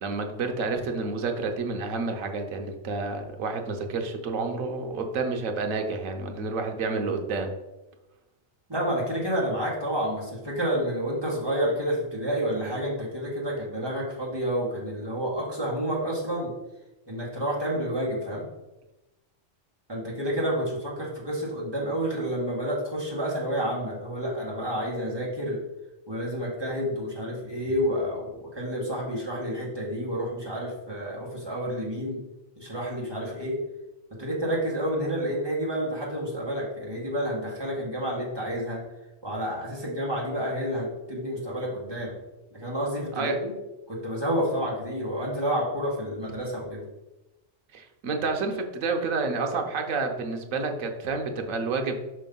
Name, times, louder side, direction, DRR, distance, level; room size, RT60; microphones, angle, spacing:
voice 1, 0.0-7.5 43.2-43.4 47.7-52.0, right 4 dB, 85° right, 4 dB, 1.2 m, -29 dB
voice 2, 8.7-16.5 17.1-18.4 19.9-25.6 26.1-32.2 32.6-33.6 34.1-38.8 39.2-42.1 42.5-43.6 43.9-46.8, equal, 20° right, -5 dB, 1.6 m, -29 dB
5.3 x 3.3 x 5.3 m, 1.0 s
omnidirectional pair, 1.4 m